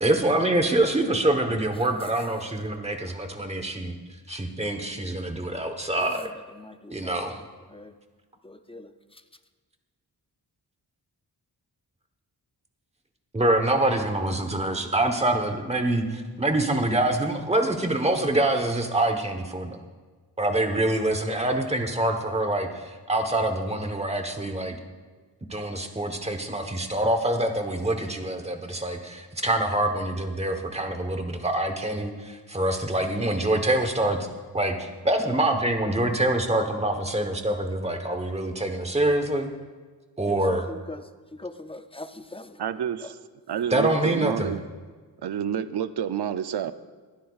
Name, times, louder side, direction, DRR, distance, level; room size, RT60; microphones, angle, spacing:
voice 1, 0.0-3.9 4.3-6.3 6.9-7.4 13.3-19.8 20.4-24.8 25.5-34.2 34.5-39.5 40.2-40.6 43.7-44.5, right 1 dB, 15° right, 5 dB, 1.0 m, -25 dB
voice 2, 6.0-7.4 7.7-7.9 8.4-8.9 40.3-41.1 41.4-42.6, left 2 dB, 15° left, 9 dB, 0.4 m, -41 dB
voice 3, 42.6-43.2 43.5-44.6 45.2-46.7, right 9 dB, 70° right, 12 dB, 0.6 m, -29 dB
21.5 x 10.0 x 2.4 m, 1.4 s
wide cardioid pair, 130°, 41 cm